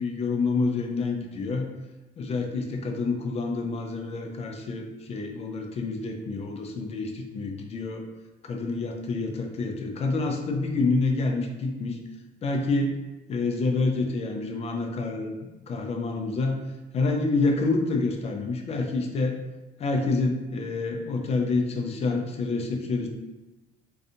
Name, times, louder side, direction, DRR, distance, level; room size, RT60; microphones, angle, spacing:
voice 1, 0.0-1.7 2.2-8.0 8.4-12.0 12.4-12.9 13.3-15.3 15.7-16.6 16.9-19.4 19.8-23.1, left 3 dB, 40° left, 3 dB, 0.4 m, -27 dB
2.6 x 2.3 x 2.5 m, 1.1 s
cardioid pair, 110°, 17 cm